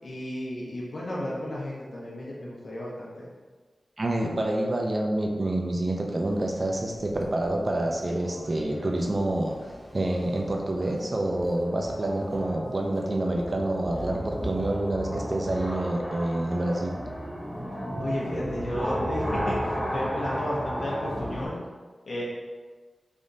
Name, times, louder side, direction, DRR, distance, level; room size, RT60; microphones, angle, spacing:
voice 1, 0.0-3.3 18.0-21.6 22.0-22.2, left 1 dB, 65° left, -6 dB, 1.0 m, -33 dB
voice 2, 4.0-9.5 9.9-16.9, right 1 dB, 40° right, 1 dB, 0.5 m, -27 dB
sound 1, 6.2-21.5, equal, ahead, 0.7 m, -34 dB
3.7 x 3.5 x 2.6 m, 1.4 s
wide cardioid pair, 105°, 0 cm